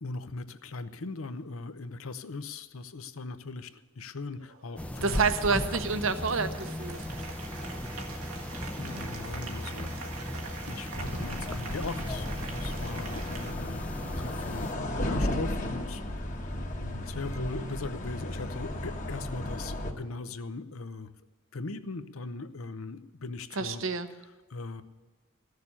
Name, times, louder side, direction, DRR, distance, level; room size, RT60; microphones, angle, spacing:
voice 1, 0.0-5.3 8.1-9.9 10.7-14.7 15.0-21.1 21.5-23.8 24.5-24.8, left 3 dB, 75° left, 12 dB, 0.8 m, -39 dB
Applause, 4.4-13.5, right 4 dB, 85° right, 1.6 m, -44 dB
sound 1, 4.8-14.7, left 1 dB, 5° left, 0.5 m, -37 dB
voice 2, 5.0-7.3 23.6-24.1, right 4 dB, 65° right, 10 dB, 1.0 m, -29 dB
sound 2, 10.9-19.9, left 1 dB, 35° left, 1.3 m, -34 dB
15.0 x 6.7 x 9.7 m, 1.4 s
head